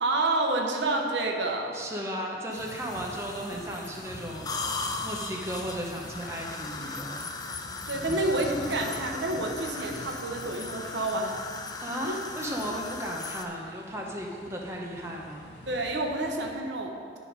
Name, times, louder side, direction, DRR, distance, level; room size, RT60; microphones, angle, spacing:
voice 1, 0.0-1.8 7.9-11.4 12.1-12.2 15.7-16.9, right 2 dB, 75° right, 2 dB, 1.0 m, -28 dB
voice 2, 1.7-7.3 11.8-15.4, equal, 15° right, -1 dB, 0.8 m, -35 dB
sound 1, 2.5-16.5, equal, 60° left, 1.4 m, -46 dB
sound 2, 2.5-13.4, left 3 dB, 20° left, 0.4 m, -38 dB
10.5 x 5.2 x 5.0 m, 2.2 s
head